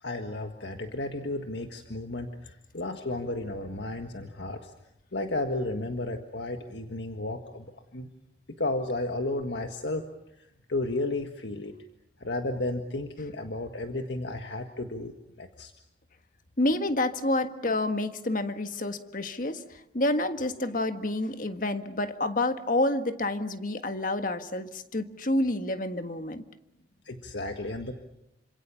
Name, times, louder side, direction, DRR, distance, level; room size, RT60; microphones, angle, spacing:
voice 1, 0.0-4.7 5.1-8.1 8.6-10.0 10.7-11.7 12.2-15.7 27.0-27.9, left 2 dB, 80° left, 5 dB, 1.7 m, -33 dB
voice 2, 16.6-26.4, left 2 dB, 50° left, 8 dB, 1.6 m, -28 dB
28.0 x 26.0 x 7.1 m, 0.86 s
head